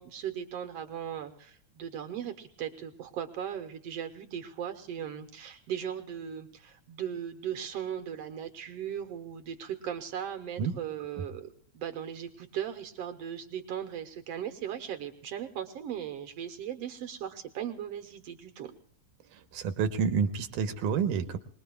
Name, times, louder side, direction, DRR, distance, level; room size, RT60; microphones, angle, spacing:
voice 1, 0.0-18.7, right 9 dB, 65° right, 8 dB, 1.7 m, -38 dB
voice 2, 19.3-21.4, right 6 dB, 85° right, 8 dB, 2.5 m, -29 dB
24.5 x 21.0 x 2.3 m, 0.65 s
omnidirectional pair, 3.6 m